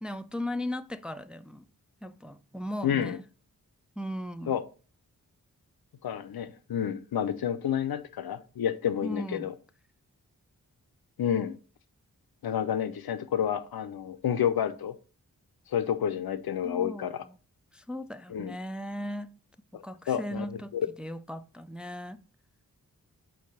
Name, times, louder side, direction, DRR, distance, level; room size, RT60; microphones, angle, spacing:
voice 1, 0.0-1.7 2.0-3.2 4.0-4.6 9.0-9.5 16.6-17.4 17.7-19.4 19.7-22.2, left 1 dB, 5° right, 0.4 m, -37 dB
voice 2, 2.8-3.2 4.5-4.6 6.0-9.5 11.2-11.6 12.4-15.0 15.7-17.2 18.3-18.6 19.7-20.9, left 9 dB, 80° left, 0.6 m, -30 dB
4.7 x 4.1 x 5.4 m
cardioid pair, 40°, 37 cm